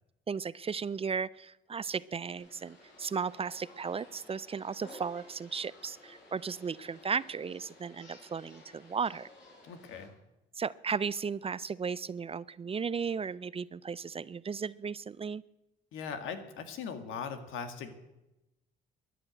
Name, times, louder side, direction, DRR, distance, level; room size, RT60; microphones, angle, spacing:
voice 1, 0.3-9.3 10.6-15.4, right 6 dB, 30° right, 20 dB, 0.4 m, -35 dB
sound 1, 2.4-10.1, left 1 dB, 70° left, 7.2 m, -55 dB
voice 2, 9.6-10.2 15.9-18.0, left 6 dB, 90° left, 8 dB, 1.9 m, -40 dB
13.5 x 10.0 x 8.7 m, 0.95 s
cardioid pair, 90°, 20 cm